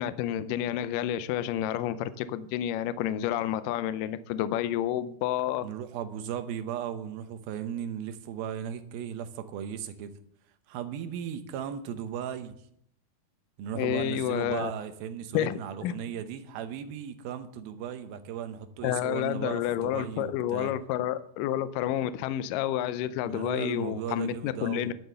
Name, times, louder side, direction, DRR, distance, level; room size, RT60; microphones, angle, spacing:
voice 1, 0.0-5.7 13.8-14.7 15.3-16.0 18.8-24.9, left 11 dB, 85° left, 1.9 m, -30 dB
voice 2, 5.6-10.1 10.7-12.5 13.6-20.7 23.2-24.9, right 9 dB, 75° right, 2.7 m, -36 dB
12.0 x 7.9 x 6.8 m
omnidirectional pair, 4.5 m